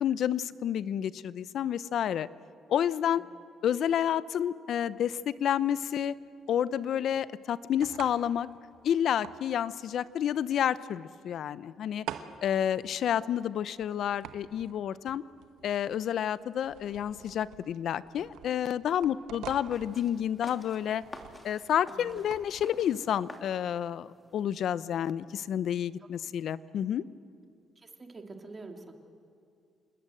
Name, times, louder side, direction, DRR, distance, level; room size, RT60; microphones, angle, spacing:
voice 1, 0.0-2.3 2.7-3.2 3.6-6.1 6.5-8.5 8.8-12.0 12.4-15.2 15.6-21.0 21.4-27.0, left 9 dB, 70° left, 17 dB, 0.7 m, -30 dB
sound 1, 4.9-22.7, right 10 dB, 90° right, 1.2 m, -49 dB
sound 2, 19.7-24.7, left 2 dB, 20° left, 3.0 m, -50 dB
voice 2, 26.0-26.3 27.7-28.9, right 3 dB, 30° right, 3 dB, 2.9 m, -47 dB
27.5 x 20.5 x 7.9 m, 2.5 s
cardioid pair, 90°, 0 cm